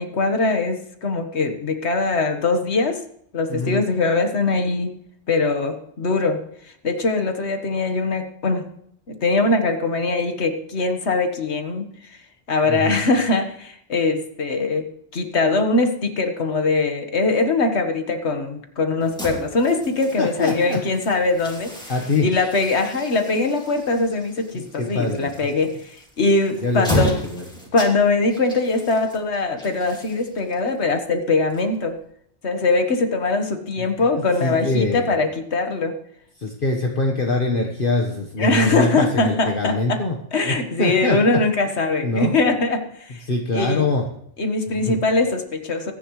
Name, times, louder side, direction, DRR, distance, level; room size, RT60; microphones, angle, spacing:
voice 1, 0.0-3.0 3.3-4.9 5.3-8.7 9.1-12.2 12.5-14.9 15.1-21.9 22.2-27.2 27.7-32.0 32.4-35.9 38.4-40.0 40.3-43.2 43.5-43.9 44.4-45.9, left 3 dB, 65° left, 6 dB, 1.7 m, -22 dB
voice 2, 3.5-3.8 12.7-13.0 20.2-20.8 21.9-22.3 24.5-25.3 26.6-27.4 34.4-35.1 36.4-40.1 40.5-41.4 42.0-42.4 43.3-44.1 44.9-45.0, left 3 dB, 50° left, 1 dB, 1.5 m, -23 dB
sound 1, 19.0-32.1, equal, 5° left, 2.7 m, -34 dB
23.0 x 10.5 x 3.2 m, 0.71 s
omnidirectional pair, 1.2 m